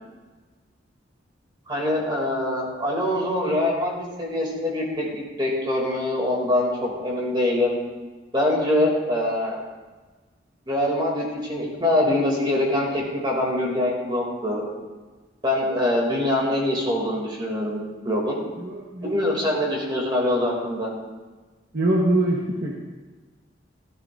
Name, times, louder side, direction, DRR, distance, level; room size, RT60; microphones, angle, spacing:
voice 1, 1.7-7.8 8.3-9.6 10.7-14.6 15.4-18.4 19.0-20.9, left 1 dB, 25° right, -3 dB, 2.6 m, -24 dB
voice 2, 18.6-19.5 21.7-22.8, right 1 dB, 55° right, -3 dB, 1.3 m, -24 dB
14.5 x 14.0 x 2.6 m, 1.3 s
head